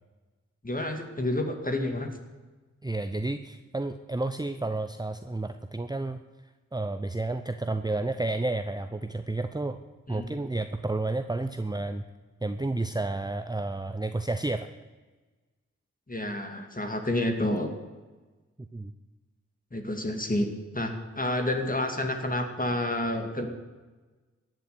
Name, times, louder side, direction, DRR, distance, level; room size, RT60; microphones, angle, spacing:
voice 1, 0.6-2.1 10.1-10.3 16.1-17.7 19.7-20.5 20.7-23.5, left 1 dB, 30° left, 4 dB, 2.3 m, -29 dB
voice 2, 2.8-6.2 6.7-9.8 10.1-12.0 12.4-14.7 18.7-18.9, right 2 dB, 15° right, 9 dB, 0.7 m, -31 dB
14.5 x 7.7 x 9.5 m, 1.3 s
cardioid pair, 40°, 30 cm